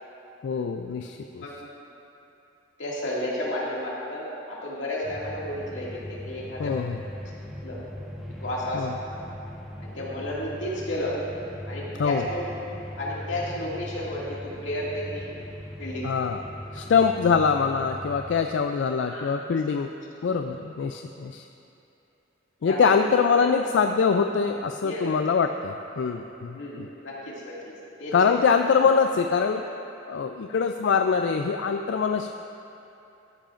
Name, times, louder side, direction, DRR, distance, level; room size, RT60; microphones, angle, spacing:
voice 1, 0.4-1.4 6.6-7.0 8.7-8.9 12.0-12.2 16.0-16.4 16.7-19.9 20.2-21.4 22.6-26.9 28.1-29.7 30.1-32.3, left 5 dB, 70° left, 6 dB, 0.3 m, -24 dB
voice 2, 1.4-1.7 2.8-6.8 7.6-7.8 8.4-8.9 9.8-11.1 11.7-12.4 13.0-15.3 15.8-16.1 16.7-16.8 19.1-19.3 22.6-22.9 23.3-23.6 24.8-25.1 26.5-27.7 28.0-28.1, left 1 dB, 90° left, -6 dB, 2.2 m, -32 dB
sound 1, 5.0-18.4, left 1 dB, ahead, 1.1 m, -39 dB
14.0 x 10.5 x 2.5 m, 2.9 s
head